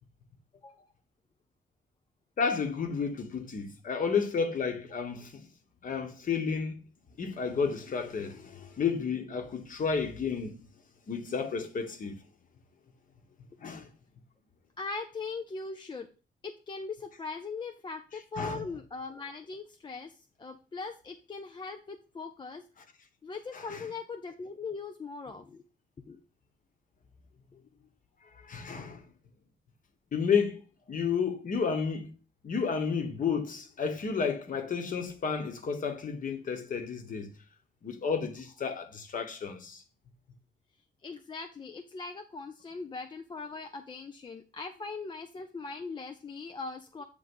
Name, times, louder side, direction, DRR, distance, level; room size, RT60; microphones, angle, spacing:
voice 1, 2.4-5.5 5.8-6.8 7.2-10.6 11.1-12.2 13.6-13.9 18.4-18.6 23.5-23.9 28.3-29.0 30.1-30.6 30.9-32.1 32.4-37.3 37.8-39.8, left 6 dB, 40° left, 1.1 m, -31 dB
voice 2, 14.8-16.1 16.4-22.6 23.2-25.6 26.1-26.2 41.0-47.0, left 4 dB, 25° left, 0.4 m, -40 dB
7.9 x 3.6 x 5.3 m
wide cardioid pair, 175°, 20 cm